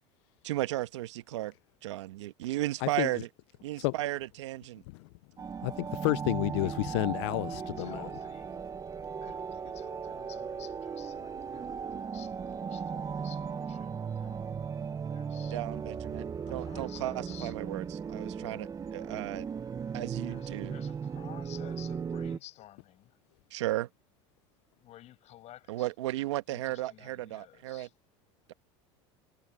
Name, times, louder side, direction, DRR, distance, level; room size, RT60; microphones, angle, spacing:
voice 1, 0.4-1.5 1.8-3.3 3.6-4.8 15.5-19.5 19.9-20.8 23.5-23.9 25.7-27.9, right 16 dB, 85° right, 1.4 m, -35 dB
sound 1, 5.4-22.4, right 6 dB, 25° right, 1.0 m, -37 dB
voice 2, 5.6-8.0, left 24 dB, 75° left, 0.4 m, -30 dB
voice 3, 7.2-8.7 9.2-14.6 15.1-15.6 16.5-17.5 20.3-23.2 24.8-25.9 26.5-27.9, left 14 dB, 50° left, 5.6 m, -52 dB
supercardioid pair, 105°, 15 cm